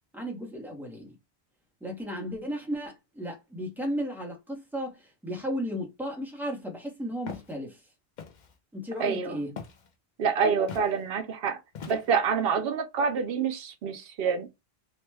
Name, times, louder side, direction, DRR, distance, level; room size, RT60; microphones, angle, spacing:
voice 1, 0.1-1.2 1.8-7.8 8.7-9.5, equal, ahead, 0.7 m, -34 dB
Walk footsteps, 7.3-7.5 8.2-8.5 9.6-9.9 10.7-10.9 11.7-12.3, left 6 dB, 50° left, 0.7 m, -41 dB
voice 2, 9.0-9.4 10.2-11.6 11.9-14.5, right 6 dB, 70° right, 0.8 m, -27 dB
3.0 x 2.1 x 3.3 m
omnidirectional pair, 1.1 m